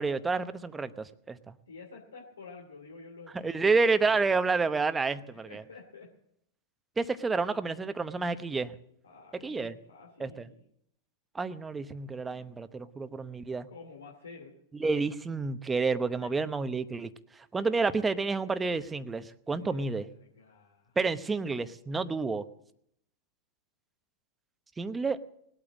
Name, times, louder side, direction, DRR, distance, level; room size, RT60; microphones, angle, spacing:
voice 1, 0.0-1.4 3.4-5.6 7.0-8.8 9.4-9.7 10.2-10.3 11.3-13.7 14.8-17.1 17.5-20.1 21.0-22.4 24.8-25.2, right 4 dB, 15° right, 11 dB, 0.9 m, -29 dB
voice 2, 1.7-4.2 5.3-6.1 9.0-10.6 13.7-14.5 16.2-16.3 19.5-21.0, left 4 dB, 85° left, 0 dB, 2.5 m, -50 dB
20.0 x 8.7 x 7.5 m, 0.73 s
hypercardioid pair, 100°, 0 cm